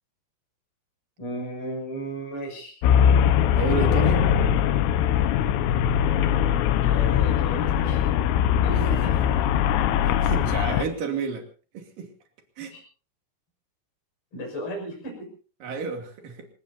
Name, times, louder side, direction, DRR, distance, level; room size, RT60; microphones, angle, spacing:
voice 1, 1.2-2.8 6.8-8.0 8.6-9.4 12.7-12.8 14.3-15.3, right 1 dB, 25° left, 1 dB, 6.8 m, -35 dB
Traffic noise roadway noise, 2.8-10.9, left 9 dB, 80° left, 3.7 m, -21 dB
voice 2, 3.4-4.3 8.7-9.2 10.0-11.5 11.7-12.1 12.6-12.8 15.6-16.5, right 5 dB, 50° right, 4 dB, 3.9 m, -31 dB
27.0 x 18.0 x 2.8 m, 0.37 s
omnidirectional pair, 5.9 m